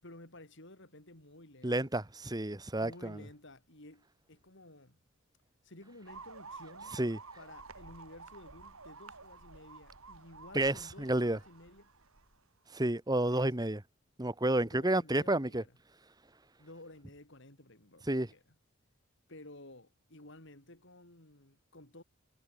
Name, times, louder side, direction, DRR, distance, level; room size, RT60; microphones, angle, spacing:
voice 1, 0.0-1.9 2.8-5.0 5.6-7.0 7.4-11.9 13.3-13.5 14.6-15.7 16.6-18.4 19.3-22.0, left 1 dB, 60° left, 4.8 m, -54 dB
voice 2, 1.6-3.2 6.9-7.2 10.5-11.4 12.7-13.8 14.2-15.6 18.1-18.3, right 1 dB, 20° right, 1.5 m, -30 dB
sound 1, 6.1-12.4, right 4 dB, 85° right, 4.9 m, -51 dB
head